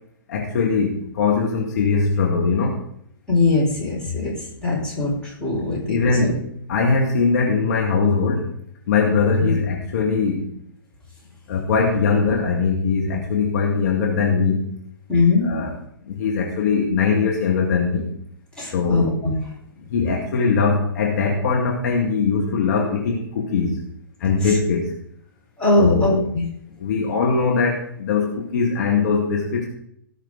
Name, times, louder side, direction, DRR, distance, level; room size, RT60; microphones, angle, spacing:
voice 1, 0.3-2.8 5.9-8.5 8.9-10.5 11.5-14.6 15.4-15.8 16.1-18.1 18.7-19.1 19.9-23.7 24.2-24.9 25.8-26.2 26.8-29.6, left 4 dB, 50° left, -1 dB, 2.2 m, -21 dB
voice 2, 3.3-4.3 4.6-6.0 6.2-6.3 9.4-9.5 15.1-15.5 18.6-19.3 24.4-24.5 25.6-26.4, left 3 dB, 5° left, -7 dB, 4.6 m, -20 dB
18.5 x 6.3 x 3.9 m, 0.68 s
figure-of-eight pair, 120°, 12 cm